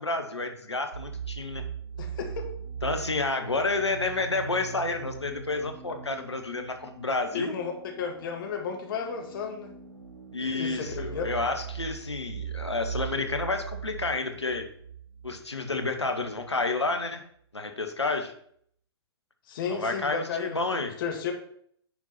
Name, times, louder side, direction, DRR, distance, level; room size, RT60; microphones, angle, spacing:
voice 1, 0.0-1.7 2.8-7.5 10.3-14.6 15.2-17.2 17.5-18.3 19.7-21.0, left 3 dB, 90° left, 5 dB, 1.2 m, -30 dB
sound 1, 0.9-16.5, right 8 dB, 70° right, 1.6 m, -40 dB
voice 2, 2.0-2.5 7.3-7.7 8.0-9.7 10.4-11.3 19.5-21.3, left 6 dB, 55° left, 2 dB, 1.8 m, -33 dB
9.9 x 4.5 x 4.3 m, 0.64 s
figure-of-eight pair, 115°, 14 cm